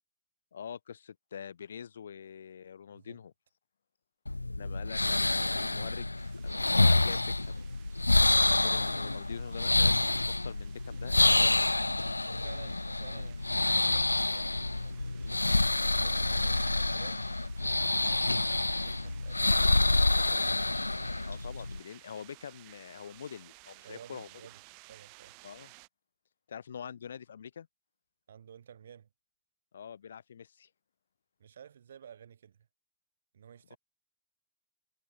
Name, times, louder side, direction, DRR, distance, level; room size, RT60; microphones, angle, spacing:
voice 1, 0.5-3.3 4.6-6.1 6.4-7.6 8.4-11.9 21.2-24.3 25.4-25.7 26.5-27.7 29.7-30.7 33.7-33.8, left 7 dB, 70° left, 4.8 m, -45 dB
voice 2, 2.9-3.2 12.3-20.7 23.8-25.4 28.3-29.1 31.4-32.7 33.3-33.8, right 8 dB, 65° right, 5.7 m, -53 dB
sound 1, 4.3-21.8, left 2 dB, 85° left, 0.4 m, -28 dB
sound 2, 6.2-25.9, right 40 dB or more, 45° right, 7.3 m, -58 dB
figure-of-eight pair, 90°, 0 cm